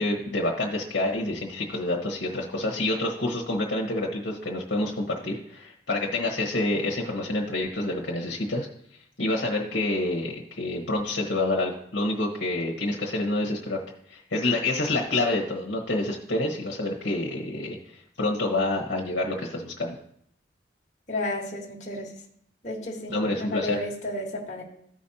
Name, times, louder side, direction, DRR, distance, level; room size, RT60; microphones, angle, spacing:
voice 1, 0.0-8.7 9.2-13.8 14.1-19.9 23.1-23.8, left 2 dB, 80° left, -1 dB, 1.2 m, -28 dB
voice 2, 21.1-22.2 22.6-24.6, left 1 dB, 40° left, -4 dB, 1.4 m, -32 dB
14.5 x 5.2 x 2.8 m, 0.67 s
head